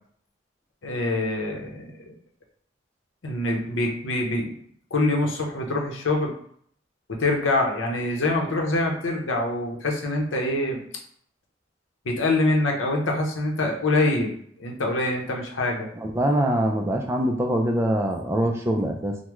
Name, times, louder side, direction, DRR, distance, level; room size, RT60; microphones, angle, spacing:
voice 1, 0.8-2.1 3.2-4.5 4.9-6.3 7.1-10.8 12.0-14.3 14.6-15.9, left 2 dB, 90° left, 1 dB, 0.7 m, -25 dB
voice 2, 16.0-19.2, right 1 dB, 15° right, 3 dB, 0.3 m, -24 dB
3.5 x 2.1 x 3.0 m, 0.64 s
head